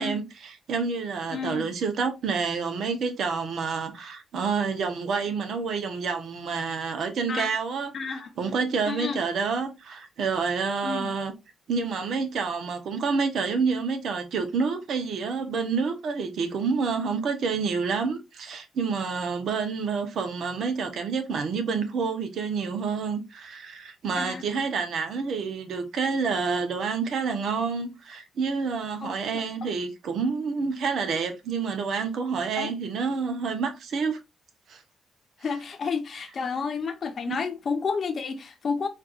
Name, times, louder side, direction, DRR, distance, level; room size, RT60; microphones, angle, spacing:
voice 1, 0.0-11.3 11.7-34.2 34.7-34.8 37.3-37.4, right 5 dB, 70° right, 0.9 m, -28 dB
voice 2, 1.3-1.6 7.3-7.5 7.9-8.3 8.9-9.2 10.8-11.1 24.2-24.4 29.0-29.1 29.6-29.7 32.6-32.7 35.4-38.9, left 5 dB, 50° left, 0.9 m, -30 dB
4.3 x 2.6 x 2.5 m
cardioid pair, 80°, 0 cm